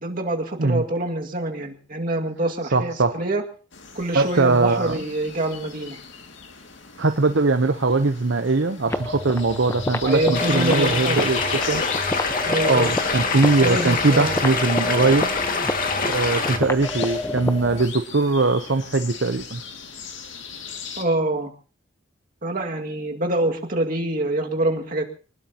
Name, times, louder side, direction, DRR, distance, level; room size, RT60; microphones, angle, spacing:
voice 1, 0.0-3.4 3.9-6.0 10.0-11.3 12.4-13.0 13.6-14.4 21.0-21.5 22.4-25.0, right 1 dB, 45° right, 2 dB, 2.2 m, -25 dB
voice 2, 2.7-3.2 4.1-4.9 7.0-11.8 12.7-15.3 16.1-19.6, right 3 dB, 65° right, 7 dB, 0.9 m, -21 dB
sound 1, 3.7-21.0, left 6 dB, 70° left, 2.4 m, -38 dB
sound 2, 8.8-17.9, left 1 dB, 15° left, 1.0 m, -29 dB
sound 3, 10.3-16.6, left 4 dB, 45° left, 2.1 m, -25 dB
25.0 x 20.0 x 3.0 m, 0.37 s
head